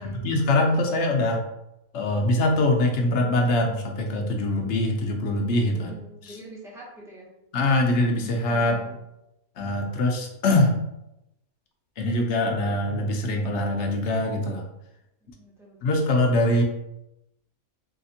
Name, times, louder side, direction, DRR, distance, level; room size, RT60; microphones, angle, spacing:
voice 1, 0.0-1.4 1.9-6.0 6.2-6.4 7.5-8.8 9.6-10.7 12.0-14.6 15.8-16.6, left 1 dB, 65° left, 2 dB, 0.7 m, -23 dB
voice 2, 5.7-7.3 8.4-9.0 15.2-15.9, right 1 dB, 5° right, -5 dB, 0.4 m, -45 dB
3.3 x 2.8 x 2.7 m, 0.88 s
omnidirectional pair, 1.5 m